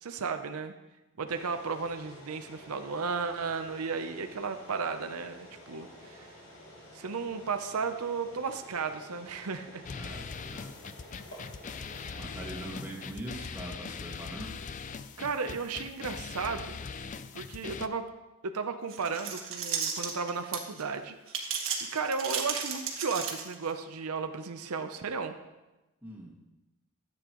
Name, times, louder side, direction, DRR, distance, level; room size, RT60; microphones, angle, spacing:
voice 1, 0.0-0.7 1.2-6.3 6.9-9.8 11.9-12.2 15.2-16.8 17.3-18.1 18.4-21.1 21.4-21.6 21.9-25.3, right 5 dB, 85° right, 8 dB, 0.7 m, -34 dB
sound 1, 1.3-13.1, equal, 60° left, 2.7 m, -51 dB
sound 2, 9.8-17.9, left 5 dB, 35° left, 0.3 m, -41 dB
voice 2, 9.9-10.7 12.1-14.6 26.0-26.3, right 1 dB, 10° right, -5 dB, 1.9 m, -42 dB
sound 3, 18.9-20.8 21.3-23.7, right 6 dB, 70° right, 1.6 m, -34 dB
14.0 x 8.9 x 3.0 m, 1.0 s
head